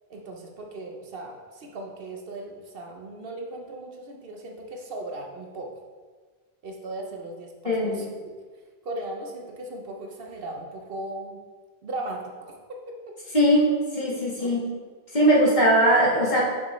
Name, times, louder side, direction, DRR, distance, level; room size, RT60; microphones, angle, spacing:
voice 1, 0.1-5.7 6.6-8.1 8.8-11.4 11.8-12.5 14.4-14.6, right 2 dB, 65° right, 2 dB, 1.0 m, -37 dB
voice 2, 7.7-8.0 13.3-14.6 15.1-16.4, right 1 dB, 45° left, -5 dB, 1.7 m, -20 dB
6.7 x 5.8 x 3.2 m, 1.5 s
omnidirectional pair, 1.1 m